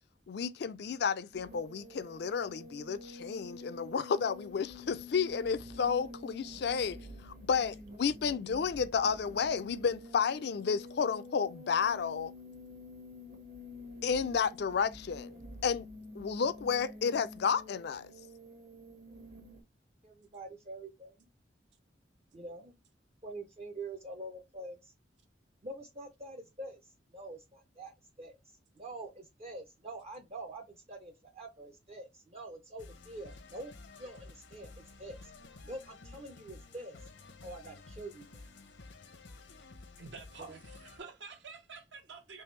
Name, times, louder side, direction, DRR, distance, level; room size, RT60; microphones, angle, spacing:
voice 1, 0.3-7.0 7.2-12.3 14.0-15.3 15.6-15.9 16.1-18.1, left 6 dB, 60° left, 0.4 m, -31 dB
sound 1, 1.3-19.6, left 1 dB, 55° right, 1.1 m, -49 dB
voice 2, 20.0-21.3 22.3-22.7 23.2-24.9 25.6-28.4 28.8-33.7 34.0-35.3 35.6-37.1 37.4-38.6 40.5-40.6, right 2 dB, 35° right, 0.5 m, -46 dB
sound 2, 32.8-41.0, left 3 dB, 85° left, 0.8 m, -52 dB
voice 3, 40.0-42.4, right 4 dB, 70° right, 0.9 m, -49 dB
3.4 x 3.2 x 3.1 m
head